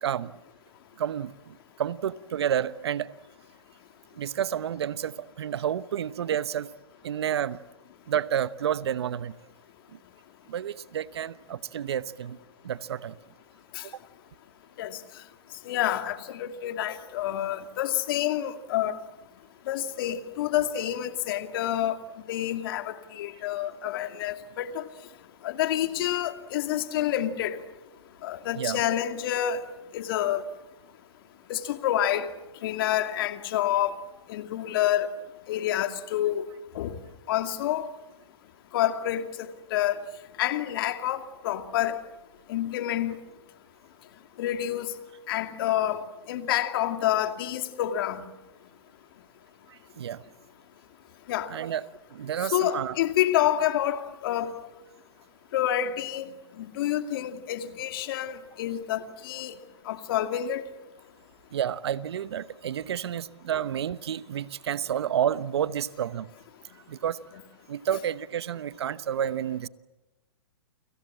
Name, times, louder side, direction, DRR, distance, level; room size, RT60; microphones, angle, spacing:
voice 1, 0.0-0.3 1.0-3.1 4.1-6.7 7.0-7.6 8.1-9.4 10.5-12.4 12.6-13.1 28.6-28.8 49.7-50.2 51.5-51.8 52.1-52.9 61.5-66.3 66.9-67.2 67.7-69.7, right 9 dB, 70° right, 1.0 m, -30 dB
voice 2, 15.6-19.0 19.7-22.0 22.3-24.8 25.4-27.6 28.2-29.6 29.9-30.4 31.5-32.3 32.6-34.0 34.3-35.1 35.5-36.5 36.7-37.0 37.3-37.9 38.7-40.0 40.4-42.0 42.5-43.1 44.4-44.9 45.3-48.2 51.3-51.5 52.4-54.5 55.5-59.5 59.9-60.6, left 12 dB, 55° left, 2.3 m, -28 dB
30.0 x 25.0 x 7.5 m
hypercardioid pair, 120°, 14 cm